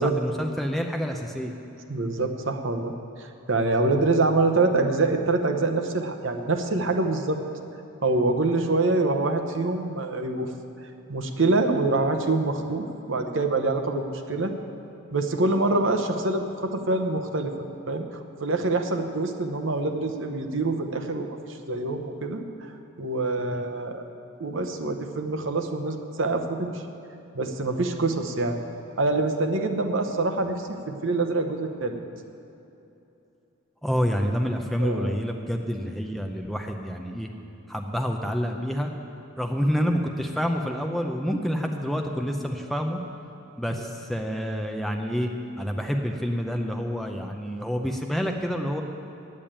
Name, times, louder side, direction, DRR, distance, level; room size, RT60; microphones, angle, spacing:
voice 1, 0.0-1.5 23.5-23.6 33.8-37.3 37.7-38.9 39.4-43.0 43.6-45.3 45.6-48.8, equal, ahead, 3 dB, 0.5 m, -28 dB
voice 2, 1.9-2.9 3.2-7.4 8.0-10.5 11.1-14.5 15.1-17.5 17.9-18.1 18.4-21.3 21.7-22.4 23.0-24.0 24.4-26.7 27.3-28.6 29.0-32.0 34.8-35.2 43.7-43.8, right 2 dB, 60° right, 6 dB, 0.8 m, -25 dB
8.9 x 8.6 x 8.7 m, 2.9 s
head